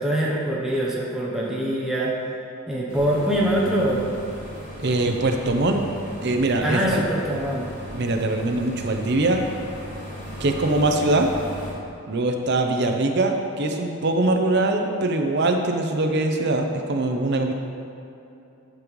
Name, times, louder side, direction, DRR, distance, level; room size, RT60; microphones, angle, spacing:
voice 1, 0.0-2.1 2.7-4.0 6.6-7.7, right 1 dB, ahead, -5 dB, 0.7 m, -23 dB
sound 1, 2.9-11.7, equal, 35° left, 1.8 m, -37 dB
voice 2, 4.8-5.9 6.2-7.0 7.9-9.4 10.4-11.3 12.1-17.5, right 2 dB, 50° right, 3 dB, 0.6 m, -22 dB
12.0 x 5.2 x 3.1 m, 2.8 s
head